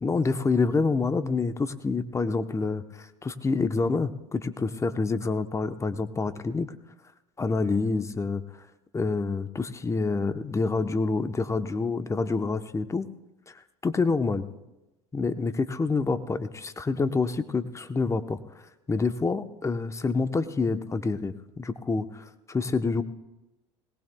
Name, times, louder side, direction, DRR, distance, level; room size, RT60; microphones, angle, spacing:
voice 1, 0.0-6.7 7.4-8.4 8.9-13.1 13.5-13.6 13.8-14.5 15.1-18.4 18.9-23.0, left 4 dB, 20° left, 10 dB, 0.9 m, -27 dB
21.0 x 18.5 x 2.3 m, 0.99 s
hypercardioid pair, 70°, 14 cm